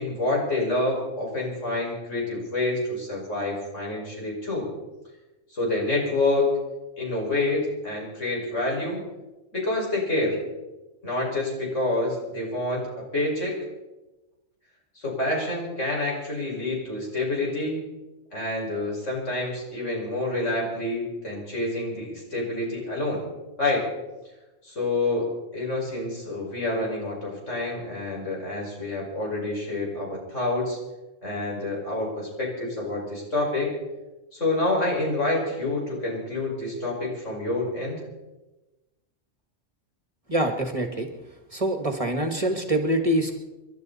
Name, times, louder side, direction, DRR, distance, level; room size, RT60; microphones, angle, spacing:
voice 1, 0.0-4.7 5.5-6.5 7.0-9.0 9.5-10.4 11.0-12.9 13.1-13.5 15.0-17.8 18.3-23.2 23.6-23.9 24.6-30.8 31.2-33.7 34.3-38.0, left 2 dB, 80° left, -3 dB, 6.0 m, -27 dB
voice 2, 40.3-41.1 41.5-43.4, right 1 dB, 30° right, 5 dB, 1.7 m, -25 dB
28.0 x 12.0 x 4.2 m, 1.1 s
omnidirectional pair, 1.3 m